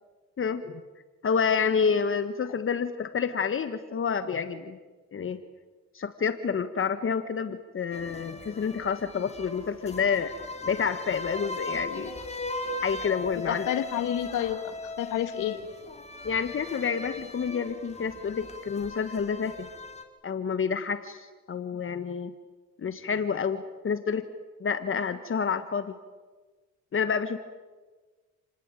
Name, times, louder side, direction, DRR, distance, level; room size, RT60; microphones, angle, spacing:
voice 1, 0.4-0.8 1.2-4.8 5.1-5.4 5.9-10.3 10.7-12.1 12.8-13.7 16.2-19.7 20.2-22.3 22.8-24.3 24.6-25.9 26.9-27.4, left 6 dB, 45° left, 10 dB, 1.5 m, -29 dB
sound 1, 7.9-20.0, left 2 dB, 20° left, 3.8 m, -38 dB
voice 2, 13.3-15.6, left 11 dB, 85° left, 9 dB, 2.4 m, -30 dB
29.5 x 20.0 x 9.1 m, 1.3 s
cardioid pair, 90°, 30 cm